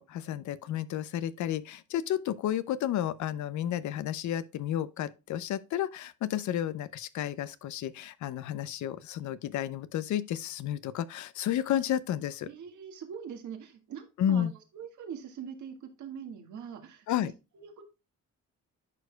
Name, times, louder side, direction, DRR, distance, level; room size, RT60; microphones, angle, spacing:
voice 1, 0.0-12.5 14.2-14.5 17.1-17.3, left 11 dB, 70° left, 0.6 m, -32 dB
voice 2, 12.5-17.3 17.5-17.8, right 7 dB, 75° right, 1.7 m, -43 dB
10.5 x 4.8 x 2.2 m
cardioid pair, 90°, 30 cm